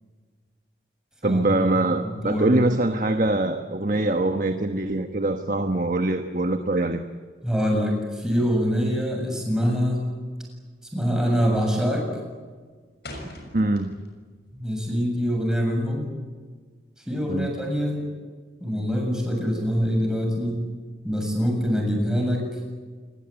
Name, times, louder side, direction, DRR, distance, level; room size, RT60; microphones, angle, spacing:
voice 1, 1.2-7.0 13.5-14.0 17.3-17.5, right 2 dB, 45° right, 6 dB, 1.2 m, -23 dB
voice 2, 2.0-2.5 7.4-10.1 10.9-12.1 14.5-16.1 17.1-18.1 18.6-20.6 21.0-22.5, equal, 5° right, 1 dB, 7.3 m, -24 dB
sound 1, 10.2-10.3 10.5-10.9 11.2-11.6 12.0-14.3 14.6-16.1, left 1 dB, 65° left, 6.4 m, -42 dB
28.0 x 21.0 x 9.0 m, 1.5 s
head